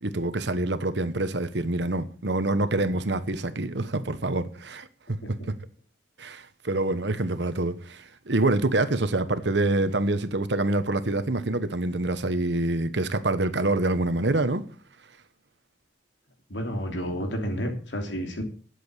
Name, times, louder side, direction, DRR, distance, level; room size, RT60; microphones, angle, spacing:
voice 1, 0.0-5.4 6.2-14.6, right 2 dB, 70° right, 1.2 m, -26 dB
voice 2, 16.5-18.4, equal, 80° left, 2.9 m, -30 dB
11.0 x 7.7 x 6.7 m
head